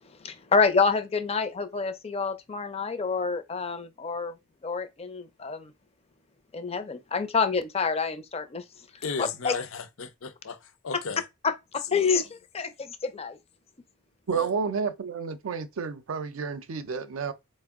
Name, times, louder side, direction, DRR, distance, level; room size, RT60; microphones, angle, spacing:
voice 1, 0.2-4.3 4.6-5.7 6.5-8.6 9.2-9.5 11.4-13.4, left 5 dB, 30° left, 0.5 m, -27 dB
voice 2, 9.0-10.6 10.8-11.2 11.9-12.2 14.3-14.5, left 5 dB, 75° left, 0.6 m, -35 dB
voice 3, 14.3-17.3, right 5 dB, 75° right, 0.5 m, -30 dB
4.3 x 2.1 x 3.5 m
head